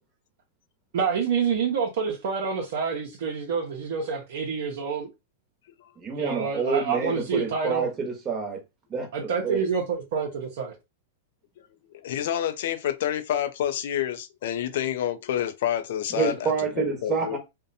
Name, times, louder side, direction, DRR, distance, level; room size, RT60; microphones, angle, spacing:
voice 1, 0.9-5.1 6.2-7.9 9.1-10.7, right 6 dB, 70° right, 0.6 m, -27 dB
voice 2, 6.0-8.6 8.9-9.6 16.1-17.4, right 5 dB, 25° right, 0.9 m, -28 dB
voice 3, 12.0-16.5 17.0-17.4, left 10 dB, 70° left, 0.4 m, -28 dB
2.6 x 2.1 x 2.5 m
hypercardioid pair, 130°, 0 cm